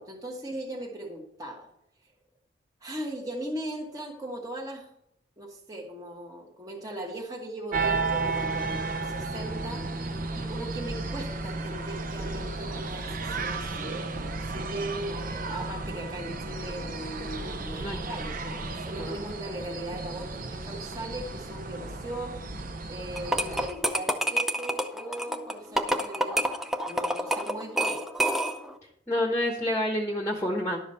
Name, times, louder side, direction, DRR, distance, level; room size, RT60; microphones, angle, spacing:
voice 1, 0.0-1.7 2.8-4.9 5.4-22.4 22.9-26.6 26.9-28.0, right 1 dB, 20° right, -1 dB, 1.3 m, -39 dB
sound 1, 7.7-23.7, right 3 dB, 45° right, 0.8 m, -33 dB
sound 2, 23.2-28.7, right 1 dB, ahead, 0.6 m, -28 dB
voice 2, 29.1-30.8, left 1 dB, 15° left, 0 dB, 1.1 m, -28 dB
11.5 x 7.2 x 4.2 m, 0.74 s
head